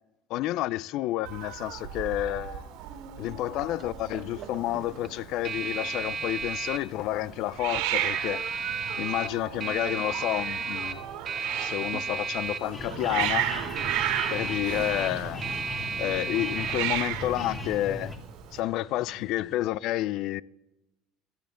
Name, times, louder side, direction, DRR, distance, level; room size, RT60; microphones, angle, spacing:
voice 1, 0.3-2.7 3.2-8.5 9.0-11.0 11.6-13.5 14.3-15.4 16.0-18.1 18.5-20.4, left 15 dB, 65° left, 0.4 m, -30 dB
Hiss, 1.2-18.6, right 12 dB, 80° right, 1.8 m, -35 dB
sound 1, 2.7-19.5, right 5 dB, 40° right, 1.1 m, -36 dB
sound 2, 12.7-18.2, left 1 dB, 20° left, 2.7 m, -38 dB
17.0 x 13.0 x 3.8 m
supercardioid pair, 120°, 0 cm